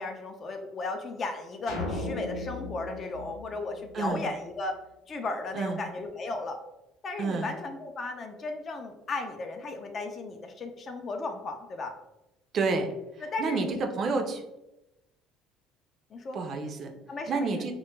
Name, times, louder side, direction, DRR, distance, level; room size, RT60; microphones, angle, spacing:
voice 1, 0.0-4.8 5.1-6.6 7.0-11.9 13.2-13.8 14.1-14.3 16.1-16.4 17.1-17.6, left 3 dB, 40° left, 5 dB, 0.4 m, -35 dB
sound 1, 1.7-4.2, left 2 dB, 80° left, 0.8 m, -36 dB
voice 2, 3.9-4.2 5.5-5.8 7.2-7.5 12.5-12.9 13.4-14.4 16.3-16.9 17.3-17.7, right 4 dB, 45° right, 5 dB, 0.4 m, -29 dB
2.2 x 2.1 x 3.0 m, 0.93 s
cardioid pair, 110°, 0 cm